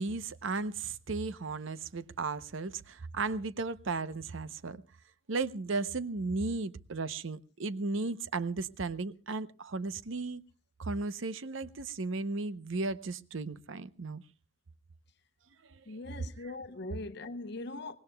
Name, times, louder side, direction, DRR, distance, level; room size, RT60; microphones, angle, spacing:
voice 1, 0.0-4.8 5.3-10.4 10.8-14.2 15.7-16.0, right 3 dB, 70° right, 0.7 m, -35 dB
voice 2, 15.9-18.0, left 2 dB, 55° left, 0.8 m, -41 dB
24.5 x 19.0 x 2.2 m
head